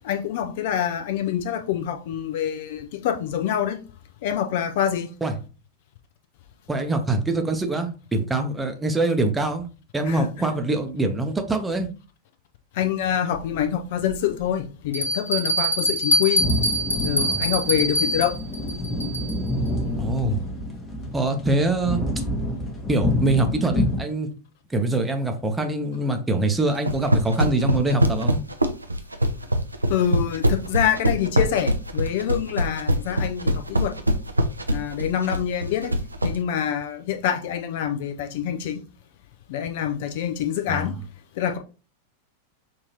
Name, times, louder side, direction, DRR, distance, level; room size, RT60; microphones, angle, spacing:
voice 1, 0.0-3.8 4.2-5.1 10.1-10.3 12.8-16.4 17.0-18.4 29.9-33.9 34.7-35.9 36.2-38.8 39.5-40.9 41.4-41.6, left 9 dB, 50° left, 0.6 m, -26 dB
voice 2, 6.7-9.7 9.9-11.9 17.2-17.4 20.0-20.4 21.1-22.0 22.9-24.3 24.7-28.4 40.7-40.9, right 2 dB, 10° right, 0.7 m, -24 dB
Bell, 13.3-13.4 14.1-14.2 14.9-19.5, equal, 80° left, 1.0 m, -24 dB
sound 1, 16.4-24.0, left 1 dB, 20° left, 1.1 m, -27 dB
sound 2, 26.7-36.3, equal, 85° right, 0.5 m, -22 dB
5.8 x 2.8 x 2.8 m
figure-of-eight pair, 90°, 0 cm